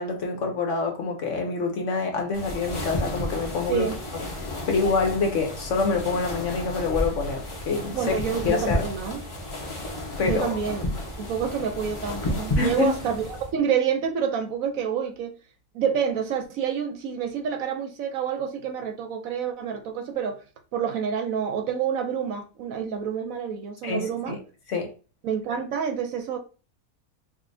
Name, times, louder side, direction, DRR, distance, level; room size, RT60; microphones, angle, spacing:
voice 1, 0.0-3.9 4.7-8.2 8.5-8.9 10.2-10.5 12.6-13.0 23.8-24.4 24.7-24.9, left 4 dB, 60° left, 1.0 m, -26 dB
sound 1, 2.3-13.5, left 1 dB, 30° left, 0.6 m, -32 dB
voice 2, 7.9-9.2 10.2-10.8 11.2-15.3 15.7-20.4 20.7-24.4 25.2-26.4, right 7 dB, 70° right, 0.9 m, -28 dB
4.9 x 2.5 x 2.6 m
omnidirectional pair, 1.6 m